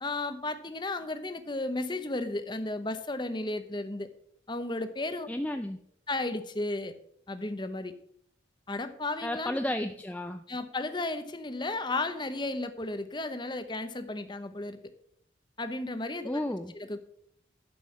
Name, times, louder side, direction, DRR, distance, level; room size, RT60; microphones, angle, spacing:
voice 1, 0.0-4.1 4.5-5.3 6.1-6.9 7.3-7.9 8.7-9.6 10.5-14.8 15.6-16.4 16.7-17.0, left 2 dB, 25° left, 10 dB, 0.8 m, -34 dB
voice 2, 5.3-5.8 9.2-10.4 16.2-16.7, left 1 dB, 5° left, 6 dB, 0.4 m, -32 dB
12.0 x 5.5 x 7.3 m, 0.68 s
head